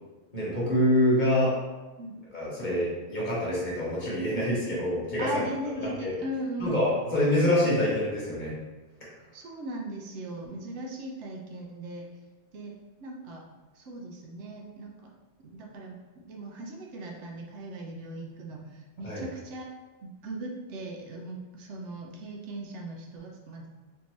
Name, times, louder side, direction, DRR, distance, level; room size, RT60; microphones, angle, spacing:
voice 1, 0.3-1.5 2.3-5.3 5.8-6.1 6.6-8.5 19.0-19.2, left 1 dB, 40° left, -7 dB, 1.1 m, -26 dB
voice 2, 5.2-6.8 9.3-12.1 12.5-12.7 13.0-13.5 13.7-15.1 15.4-19.7 20.0-23.7, right 1 dB, 75° right, 0 dB, 0.9 m, -38 dB
3.6 x 2.6 x 3.0 m, 1.2 s
omnidirectional pair, 1.2 m